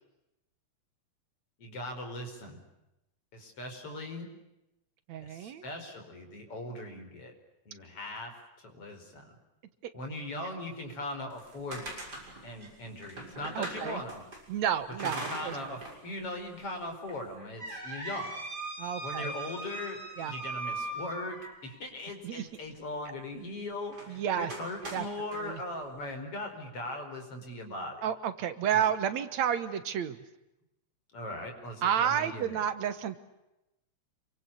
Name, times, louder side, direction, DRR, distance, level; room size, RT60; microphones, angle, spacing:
voice 1, 1.6-2.6 3.3-4.3 5.2-7.3 7.7-8.4 8.6-9.3 9.9-11.9 12.4-14.2 15.0-18.3 19.0-28.1 28.7-28.9 31.1-32.6, left 1 dB, 50° left, 4 dB, 5.8 m, -40 dB
voice 2, 5.1-5.6 13.6-14.0 14.5-15.6 18.8-19.3 20.2-20.3 22.2-22.5 24.1-24.5 24.9-25.0 25.4-25.6 28.0-30.2 31.8-33.2, right 9 dB, 70° right, 12 dB, 2.5 m, -31 dB
sound 1, 11.3-14.4 15.0-16.0 16.4-16.5 17.1-21.8 23.9-24.1 24.5-25.4, right 2 dB, 30° right, 7.1 m, -40 dB
28.0 x 24.5 x 8.5 m, 0.92 s
omnidirectional pair, 3.4 m